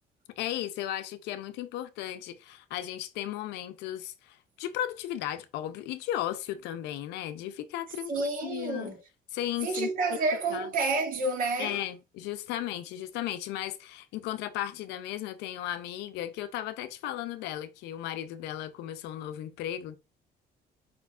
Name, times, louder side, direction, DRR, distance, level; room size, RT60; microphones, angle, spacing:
voice 1, 0.4-8.9 9.3-9.9 10.5-10.7 11.6-20.0, left 12 dB, 85° left, 0.6 m, -35 dB
voice 2, 8.1-9.0 9.6-11.8, right 3 dB, 55° right, 1.4 m, -29 dB
4.9 x 3.5 x 2.4 m
cardioid pair, 110°, 17 cm